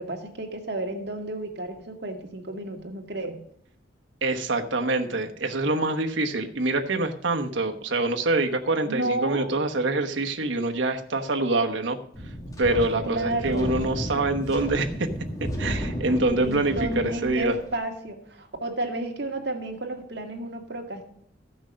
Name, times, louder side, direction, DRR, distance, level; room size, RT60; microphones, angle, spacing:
voice 1, 0.0-3.4 8.8-9.5 13.0-13.7 16.4-21.0, right 2 dB, 60° right, 3 dB, 1.9 m, -31 dB
voice 2, 4.2-12.0 12.6-15.1 15.4-16.9 17.2-17.5, right 2 dB, 80° right, 4 dB, 1.1 m, -25 dB
Wind, 12.1-17.7, equal, 20° left, 2.0 m, -33 dB
14.0 x 6.2 x 6.4 m, 0.65 s
head